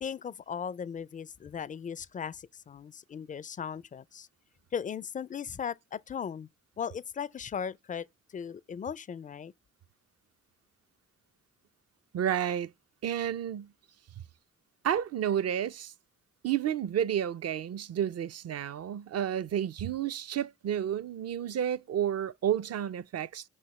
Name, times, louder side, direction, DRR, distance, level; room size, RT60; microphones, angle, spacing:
voice 1, 0.0-4.3 4.7-6.5 6.8-8.1 8.3-9.5, left 7 dB, 25° left, 0.4 m, -37 dB
voice 2, 12.1-12.7 13.0-13.7 14.8-15.9 16.4-23.5, right 10 dB, 50° right, 0.5 m, -31 dB
5.5 x 3.1 x 2.9 m
supercardioid pair, 45°, 33 cm